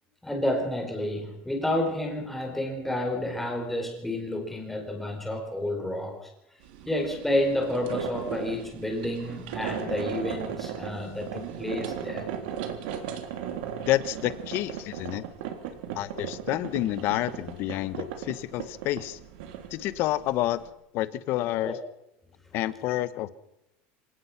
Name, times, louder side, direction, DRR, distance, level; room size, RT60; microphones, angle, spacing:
voice 1, 0.2-6.3 6.9-12.3 21.6-21.8, left 1 dB, 5° left, 2 dB, 4.8 m, -30 dB
sound 1, 6.6-20.7, right 8 dB, 85° right, 3.7 m, -37 dB
voice 2, 13.9-15.2 15.9-19.2 19.7-20.6 20.9-21.8 22.5-23.3, left 15 dB, 50° left, 15 dB, 1.3 m, -29 dB
26.5 x 18.5 x 6.1 m, 0.84 s
cardioid pair, 160°, 5 cm